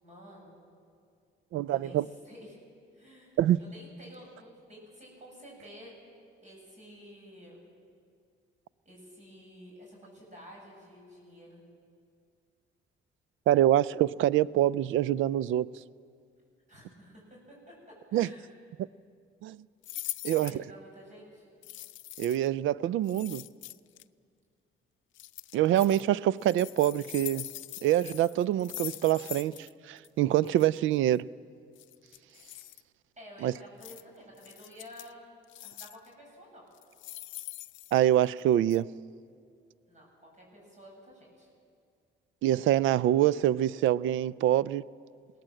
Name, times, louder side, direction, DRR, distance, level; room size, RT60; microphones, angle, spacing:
voice 1, 0.0-0.6 1.7-2.6 2.9-5.9 6.4-7.6 8.8-11.6 16.7-18.5 20.4-21.4 33.2-35.2 35.6-36.6 39.9-41.5, equal, 35° right, 7.6 m, -51 dB
voice 2, 1.5-2.1 3.4-3.6 13.5-15.7 18.1-18.3 19.4-19.6 20.2-20.6 22.2-23.4 25.5-27.5 27.8-31.3 33.4-33.5 37.9-39.0 42.4-44.8, right 12 dB, 80° right, 0.4 m, -25 dB
sound 1, 19.8-20.6 21.6-22.5 23.0-24.0 25.1-26.0 26.4-29.7 30.0-30.1 30.4-30.7 31.8-32.8 33.8-34.0 34.4-35.1 35.5-36.1 36.7-38.4 38.7-38.8, left 15 dB, 75° left, 0.5 m, -42 dB
22.0 x 18.0 x 7.7 m
cardioid pair, 90°, 20 cm